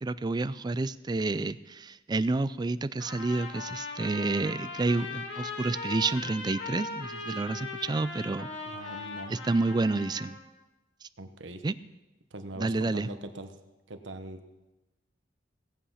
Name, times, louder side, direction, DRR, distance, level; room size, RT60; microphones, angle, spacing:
voice 1, 0.0-8.5 9.3-10.4 11.0-11.1 11.6-11.7 12.6-13.1, right 3 dB, 25° right, 15 dB, 0.4 m, -29 dB
Trumpet, 3.0-10.5, left 3 dB, 65° left, 2.0 m, -39 dB
voice 2, 8.7-9.3 11.2-11.6 12.3-13.5 13.9-14.4, right 2 dB, 90° right, 7 dB, 1.2 m, -42 dB
17.0 x 8.5 x 5.7 m, 1.1 s
head